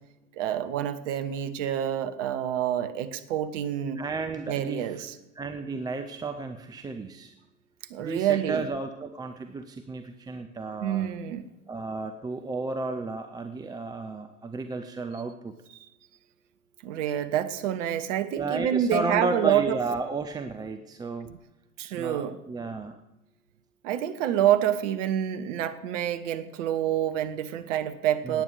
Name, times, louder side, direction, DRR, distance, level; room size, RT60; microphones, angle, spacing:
voice 1, 0.4-4.0 4.5-5.1 7.9-8.7 10.8-11.5 15.8-15.9 16.8-19.8 21.8-22.4 23.8-28.4, right 10 dB, 55° right, 10 dB, 1.1 m, -27 dB
voice 2, 4.0-5.0 5.4-7.3 8.0-11.1 11.7-15.5 18.3-21.4 21.9-23.0 28.2-28.4, right 3 dB, 10° right, 6 dB, 0.5 m, -33 dB
17.0 x 9.1 x 4.9 m, 0.97 s
figure-of-eight pair, 80°, 45 cm